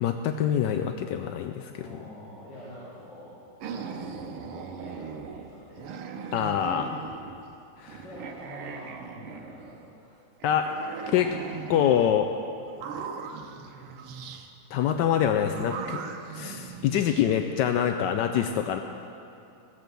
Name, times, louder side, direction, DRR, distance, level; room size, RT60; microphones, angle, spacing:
voice 1, 0.0-1.9 6.3-7.0 7.8-8.0 10.4-10.7 11.1-11.4 11.7-12.3 14.7-16.0 16.3-18.8, left 9 dB, 80° left, 6 dB, 1.0 m, -25 dB
voice 2, 1.8-3.4 3.7-5.9 8.0-10.2, equal, 60° left, -10 dB, 4.0 m, -45 dB
sound 1, 3.6-7.5 7.9-9.9 10.4-12.1 12.7-14.5 15.4-17.2, right 6 dB, 90° right, 1.8 m, -39 dB
17.0 x 7.7 x 6.8 m, 2.7 s
omnidirectional pair, 2.4 m